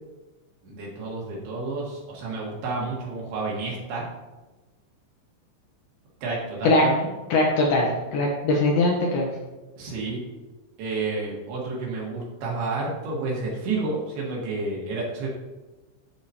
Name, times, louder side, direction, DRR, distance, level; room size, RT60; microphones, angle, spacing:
voice 1, 0.6-4.0 6.2-7.1 9.8-10.2 10.8-15.3, right 3 dB, 65° right, -4 dB, 3.2 m, -30 dB
voice 2, 7.3-9.3, left 2 dB, 75° left, -2 dB, 2.4 m, -21 dB
14.5 x 4.9 x 2.8 m, 1.1 s
omnidirectional pair, 5.4 m